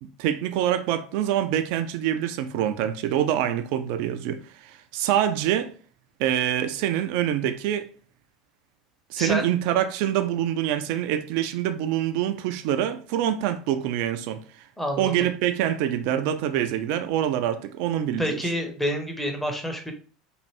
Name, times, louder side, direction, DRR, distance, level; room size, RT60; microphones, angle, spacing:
voice 1, 0.0-5.7 6.2-7.9 9.1-14.4 15.0-18.5, right 11 dB, 50° right, 0.3 m, -25 dB
voice 2, 9.2-9.5 14.8-15.1 18.2-19.9, equal, 5° left, 0.7 m, -28 dB
3.1 x 2.5 x 2.9 m
figure-of-eight pair, 75°, 4 cm